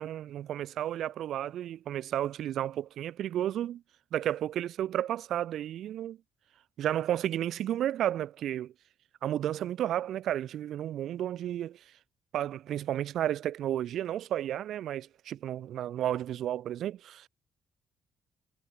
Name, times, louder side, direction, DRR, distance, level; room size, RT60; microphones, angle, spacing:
voice 1, 0.0-3.8 4.1-6.2 6.8-8.7 9.2-11.8 12.3-17.3, right 11 dB, 75° right, 5.3 m, -32 dB
cardioid pair, 90°, 0 cm